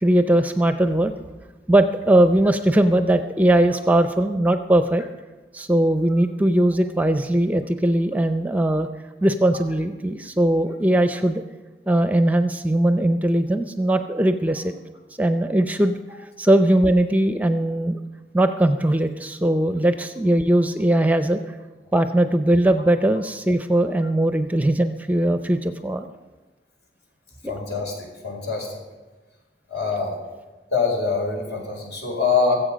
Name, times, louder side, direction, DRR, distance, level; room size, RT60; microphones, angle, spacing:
voice 1, 0.0-1.1 1.7-5.0 5.5-8.9 9.2-11.4 11.9-14.7 15.2-16.0 16.4-18.0 18.3-21.4 21.9-26.1 27.4-27.5, right 1 dB, 10° right, 8 dB, 0.5 m, -20 dB
voice 2, 27.4-27.9 28.2-28.7 29.7-30.2 30.7-32.6, left 4 dB, 75° left, 0 dB, 4.9 m, -24 dB
23.5 x 8.0 x 5.1 m, 1.2 s
head